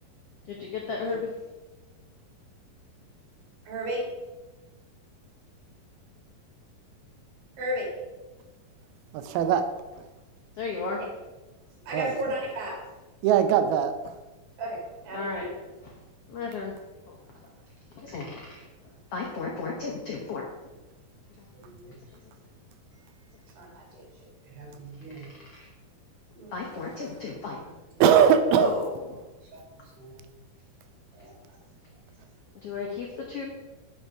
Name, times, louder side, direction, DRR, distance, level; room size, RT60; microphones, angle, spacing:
voice 1, 0.5-1.2 10.6-11.0 15.1-15.5 15.8-15.9 16.3-16.7 17.1-17.2 17.9-18.7 19.1-20.4 25.5-25.7 26.5-27.6 28.5-28.9 32.6-33.5, left 4 dB, 75° left, -1 dB, 1.3 m, -34 dB
voice 2, 3.7-4.1 7.6-7.9 11.8-12.8 14.6-15.5 21.5-22.0 23.6-24.1 24.5-25.3 26.4-26.5 29.5-29.6 30.0-30.2 31.1-31.3, equal, 65° right, -2 dB, 4.3 m, -35 dB
voice 3, 9.1-9.7 11.9-12.1 13.2-14.1 28.0-28.8, right 8 dB, 85° right, 8 dB, 2.5 m, -21 dB
10.5 x 5.4 x 4.7 m, 1.1 s
omnidirectional pair, 4.4 m